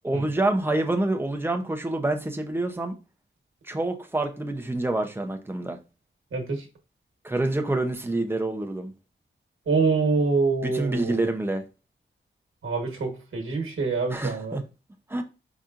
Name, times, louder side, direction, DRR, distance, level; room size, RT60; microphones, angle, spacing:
voice 1, 0.0-3.0 3.7-5.8 7.2-8.9 10.6-11.6 14.1-14.6 15.1-15.2, right 2 dB, 10° right, 0.7 m, -27 dB
voice 2, 6.3-6.7 9.7-11.3 12.6-14.6, right 4 dB, 90° right, 1.3 m, -25 dB
5.0 x 4.2 x 2.5 m
wide cardioid pair, 130°, 21 cm